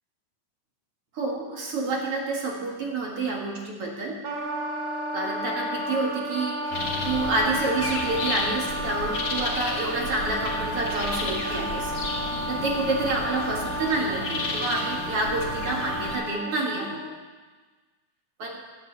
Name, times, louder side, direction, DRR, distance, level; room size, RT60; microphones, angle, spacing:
voice 1, 1.1-4.3 5.1-6.6 7.0-11.9 12.5-17.0 18.4-18.6, right 2 dB, 50° right, -1 dB, 2.4 m, -28 dB
Wind instrument woodwind instrument, 4.2-17.1, equal, 70° right, 3.6 m, -32 dB
sound 1, 6.7-16.1, left 2 dB, 45° left, 3.6 m, -32 dB
12.0 x 10.5 x 8.0 m, 1.3 s
omnidirectional pair, 4.0 m